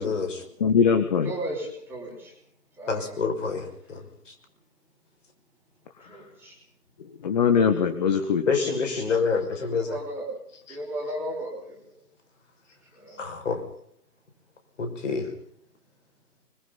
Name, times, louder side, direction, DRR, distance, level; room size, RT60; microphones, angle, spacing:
voice 1, 0.0-0.4 2.9-4.0 8.5-9.9 13.2-13.6 14.8-15.3, left 5 dB, 50° left, 5 dB, 6.0 m, -27 dB
voice 2, 0.6-1.3 7.2-9.0, left 6 dB, 25° left, 7 dB, 1.6 m, -22 dB
voice 3, 1.2-2.3 2.8-3.2 6.1-6.6 9.7-10.3 10.7-11.8 12.9-13.2, right 1 dB, 5° right, -2 dB, 5.4 m, -35 dB
30.0 x 22.0 x 4.1 m, 0.66 s
figure-of-eight pair, 150°, 48 cm